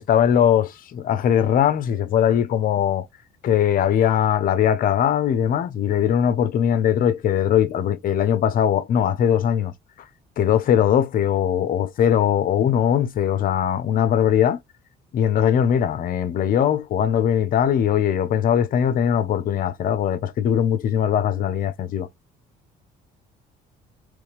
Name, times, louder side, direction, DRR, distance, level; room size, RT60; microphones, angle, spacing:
voice 1, 0.0-3.1 3.4-9.7 10.4-14.6 15.1-22.1, left 9 dB, 55° left, 0.8 m, -20 dB
3.6 x 3.2 x 3.2 m
cardioid pair, 110°, 17 cm